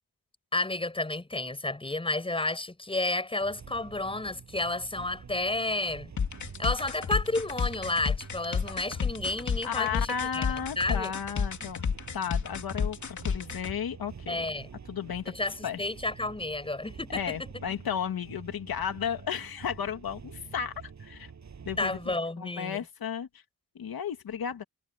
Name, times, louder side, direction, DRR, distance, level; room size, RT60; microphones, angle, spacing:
voice 1, 0.5-6.1 6.6-10.4 10.8-11.1 14.3-14.7 15.3-17.5 21.8-22.8, left 2 dB, 15° left, 6.9 m, -31 dB
sound 1, 3.4-22.2, right 6 dB, 50° right, 7.9 m, -47 dB
sound 2, 6.2-13.7, left 6 dB, 55° left, 2.8 m, -31 dB
voice 2, 9.6-11.9 12.1-14.5 14.9-15.3 15.6-15.8 17.1-20.7 21.0-21.3 21.7-23.3 23.7-24.6, left 8 dB, 80° left, 2.2 m, -34 dB
wide cardioid pair, 175°, 35 cm